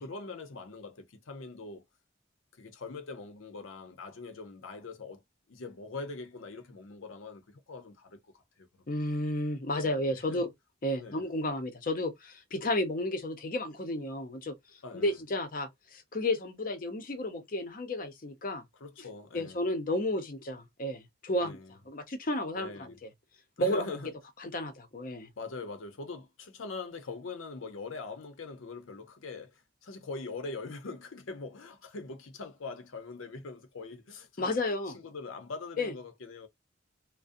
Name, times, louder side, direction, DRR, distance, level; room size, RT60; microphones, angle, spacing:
voice 1, 0.0-1.8 2.6-5.2 5.5-9.0 9.8-10.4 11.0-11.2 14.8-15.2 18.7-19.6 21.4-21.7 22.5-23.0 23.6-24.1 25.4-36.5, left 3 dB, 85° left, 0.6 m, -43 dB
voice 2, 8.9-10.5 10.8-14.5 14.9-18.6 19.3-21.6 21.9-22.9 23.6-23.8 24.4-25.3 34.4-35.0 35.8-35.9, left 1 dB, 45° left, 0.6 m, -32 dB
2.5 x 2.0 x 2.5 m
head